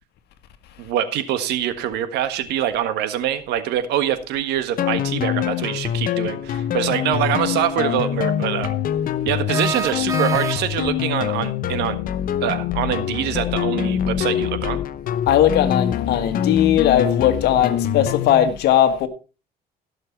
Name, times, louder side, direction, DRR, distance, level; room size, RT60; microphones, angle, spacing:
voice 1, 0.8-8.7 9.2-12.0 12.4-14.8, right 10 dB, 85° right, 1.6 m, -24 dB
sound 1, 4.8-18.5, left 10 dB, 55° left, 0.8 m, -24 dB
sound 2, 7.2-7.3 9.5-11.0, right 4 dB, 20° right, 1.0 m, -28 dB
voice 2, 15.3-19.1, left 11 dB, 75° left, 1.6 m, -18 dB
16.5 x 6.7 x 4.5 m
cardioid pair, 110°, 17 cm